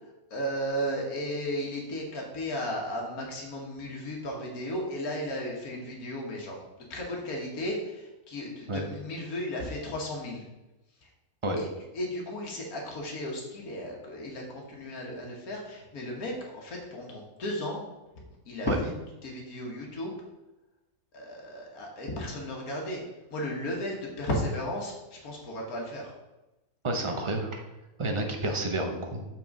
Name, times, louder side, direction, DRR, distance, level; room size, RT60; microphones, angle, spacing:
voice 1, 0.3-6.6 6.9-10.4 11.0-11.1 11.6-11.7 11.9-17.9 18.4-18.9 19.2-20.2 21.1-23.0 23.3-26.1, equal, 85° left, -1 dB, 1.8 m, -34 dB
voice 2, 26.8-27.6 28.0-29.3, right 2 dB, 25° right, 3 dB, 0.7 m, -30 dB
6.0 x 4.6 x 5.2 m, 1.0 s
omnidirectional pair, 1.5 m